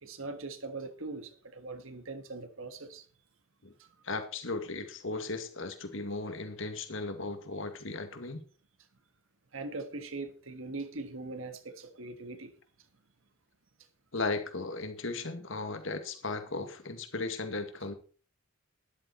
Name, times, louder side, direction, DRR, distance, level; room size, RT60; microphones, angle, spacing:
voice 1, 0.0-3.0 3.8-3.9 9.5-12.5, right 3 dB, 85° right, 1.6 m, -41 dB
voice 2, 4.0-8.4 14.1-17.9, left 3 dB, 70° left, 2.1 m, -36 dB
12.5 x 11.5 x 4.3 m
head